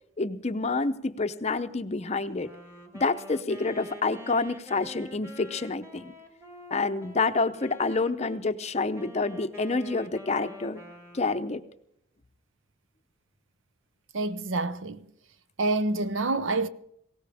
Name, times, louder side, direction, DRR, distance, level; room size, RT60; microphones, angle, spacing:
voice 1, 0.2-2.5 2.9-6.1 6.7-10.8 11.1-11.6, left 3 dB, 30° left, 0.6 m, -28 dB
Wind instrument woodwind instrument, 2.3-8.4 8.9-11.6, equal, 15° right, 1.5 m, -46 dB
voice 2, 14.1-15.1 15.6-16.7, right 2 dB, 70° right, 0.7 m, -27 dB
20.0 x 17.5 x 3.5 m
head